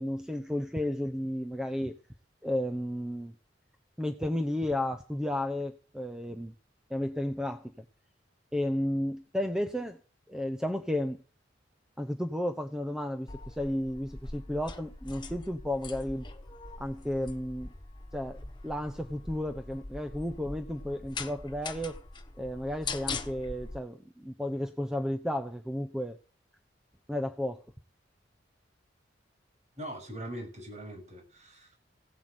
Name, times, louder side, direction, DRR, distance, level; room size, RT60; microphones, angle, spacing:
voice 1, 0.0-2.0 2.4-3.3 4.0-6.5 6.9-7.8 8.5-10.0 10.3-11.2 12.0-16.3 16.8-17.7 18.1-22.0 22.4-26.2 27.1-27.6, left 1 dB, 5° right, 7 dB, 0.9 m, -33 dB
sound 1, 13.3-23.8, left 3 dB, 25° left, 1.2 m, -42 dB
voice 2, 29.8-31.8, right 1 dB, 40° right, 3 dB, 6.8 m, -41 dB
16.5 x 8.1 x 8.0 m, 0.39 s
head